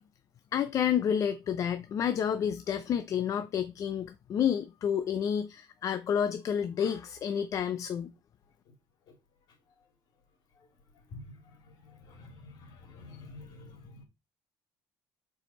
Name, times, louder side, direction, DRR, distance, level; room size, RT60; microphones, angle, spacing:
voice 1, 0.5-8.1, left 8 dB, 40° left, 0.5 m, -30 dB
voice 2, 11.8-14.0, left 2 dB, 55° left, 3.0 m, -48 dB
7.9 x 4.7 x 4.2 m
cardioid pair, 160°, 8 cm